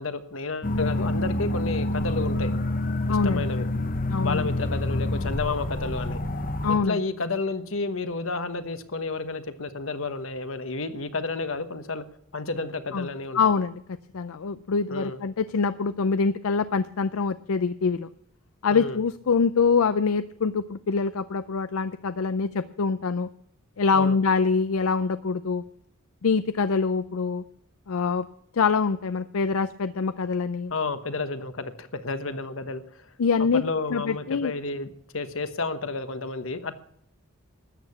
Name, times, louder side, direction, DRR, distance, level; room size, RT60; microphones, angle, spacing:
voice 1, 0.0-2.5 3.1-3.7 4.2-6.2 6.7-12.0 12.3-13.4 14.9-15.2 18.7-19.0 23.9-24.2 30.7-33.1 33.5-36.7, left 3 dB, 65° left, 1.2 m, -31 dB
sound 1, 0.6-6.8, left 1 dB, 40° left, 0.8 m, -27 dB
voice 2, 3.1-3.5 4.1-4.5 6.6-7.0 12.9-13.1 13.3-13.8 14.1-18.1 18.6-23.3 23.8-25.6 26.2-27.4 27.9-28.3 28.5-30.7 33.2-33.6 33.9-34.5, left 5 dB, 80° left, 0.5 m, -24 dB
13.5 x 8.7 x 7.1 m
head